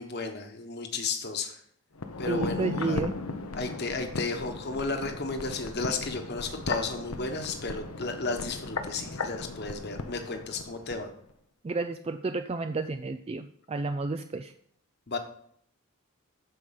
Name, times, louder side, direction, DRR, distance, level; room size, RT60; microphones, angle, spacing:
voice 1, 0.0-1.6 2.2-3.1 3.5-11.1 15.1-15.2, left 3 dB, 50° left, 5 dB, 1.3 m, -33 dB
sound 1, 1.9-11.0 11.3-11.4, left 3 dB, 85° left, 0.9 m, -36 dB
voice 2, 2.3-3.1 11.6-14.5, right 3 dB, 25° right, 8 dB, 0.3 m, -31 dB
13.0 x 5.0 x 5.8 m, 0.67 s
head